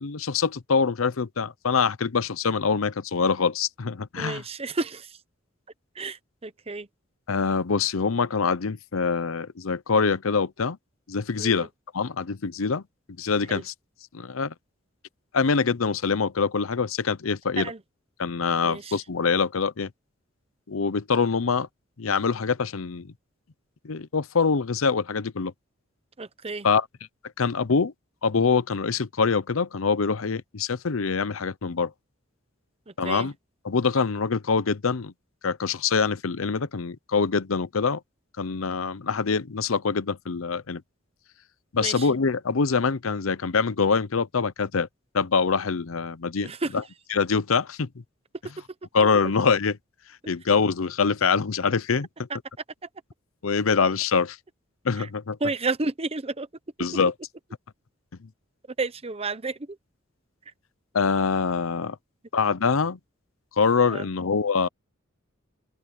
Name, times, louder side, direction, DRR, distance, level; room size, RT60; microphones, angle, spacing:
voice 1, 0.0-4.4 7.3-10.8 11.1-11.7 11.9-12.8 13.2-13.7 14.1-14.5 15.3-17.7 18.2-19.9 20.7-21.7 22.0-23.1 23.8-25.5 26.6-26.9 27.4-27.9 28.2-31.9 33.0-33.3 33.6-35.1 35.4-38.0 38.4-40.8 41.7-44.9 45.1-46.5 47.1-47.9 48.9-49.8 50.3-52.1 53.4-54.4 54.8-55.4 56.8-57.1 60.9-62.0 62.3-63.0 63.6-64.7, left 5 dB, 80° left, 0.7 m, -24 dB
voice 2, 4.2-5.2 5.9-6.9 11.4-11.7 13.5-13.6 17.6-17.8 18.6-19.0 26.2-26.7 32.9-33.3 41.8-42.1 46.4-46.7 55.0-55.1 55.4-56.5 58.8-59.8 63.9-64.1, right 3 dB, 30° right, 0.9 m, -31 dB
open air
head